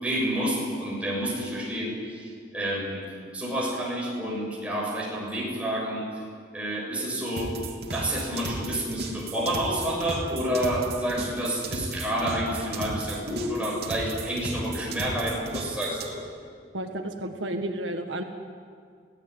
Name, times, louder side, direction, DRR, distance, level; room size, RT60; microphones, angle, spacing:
voice 1, 0.0-3.0 3.3-6.0 6.5-7.5 7.9-16.2, right 1 dB, 5° right, -4 dB, 6.9 m, -29 dB
sound 1, 7.4-16.1, right 2 dB, 55° right, 3.0 m, -36 dB
voice 2, 16.7-18.2, right 1 dB, 80° right, 4 dB, 1.7 m, -32 dB
25.0 x 17.0 x 9.7 m, 2.1 s
head